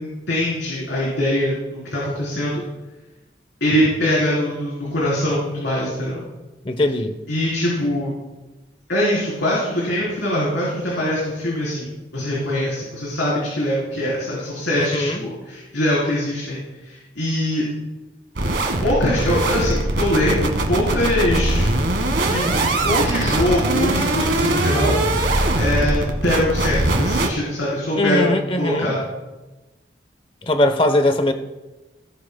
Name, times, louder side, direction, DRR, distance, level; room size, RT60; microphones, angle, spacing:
voice 1, 0.0-2.6 3.6-6.2 7.3-8.1 8.9-17.6 18.8-21.7 22.3-25.3 25.6-29.0, left 1 dB, 85° left, -7 dB, 3.7 m, -23 dB
voice 2, 6.6-7.2 14.7-15.2 28.0-28.9 30.4-31.3, left 1 dB, 30° left, 8 dB, 0.8 m, -20 dB
sound 1, 18.3-27.3, right 2 dB, 75° right, 1.5 m, -21 dB
17.5 x 10.0 x 2.2 m, 1.1 s
head